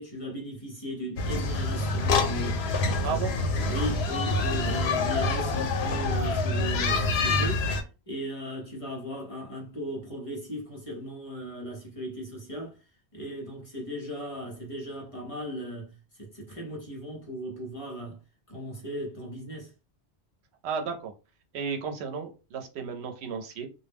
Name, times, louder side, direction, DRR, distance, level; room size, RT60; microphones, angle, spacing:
voice 1, 0.0-2.7 2.9-3.3 3.7-7.7 8.1-12.8 13.1-18.2 18.5-19.7, equal, 35° left, 0.8 m, -37 dB
sound 1, 1.2-7.8, left 2 dB, 80° left, 0.8 m, -26 dB
voice 2, 3.0-3.3 20.6-21.1 21.5-23.7, right 6 dB, 85° right, 0.9 m, -33 dB
2.2 x 2.1 x 3.4 m
omnidirectional pair, 1.1 m